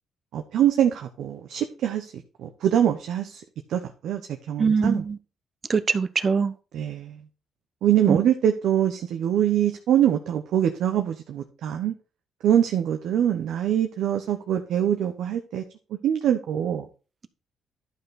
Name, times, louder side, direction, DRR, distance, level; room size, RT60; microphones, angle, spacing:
voice 1, 0.3-2.1 2.4-3.4 3.7-4.2 4.5-5.0 6.7-7.2 7.8-11.9 12.4-15.6 16.0-16.9, right 10 dB, 75° right, 0.9 m, -24 dB
voice 2, 4.6-5.2 5.7-6.5 8.1-8.2, right 5 dB, 40° right, 0.9 m, -22 dB
11.5 x 5.5 x 4.2 m
cardioid pair, 90°, 0 cm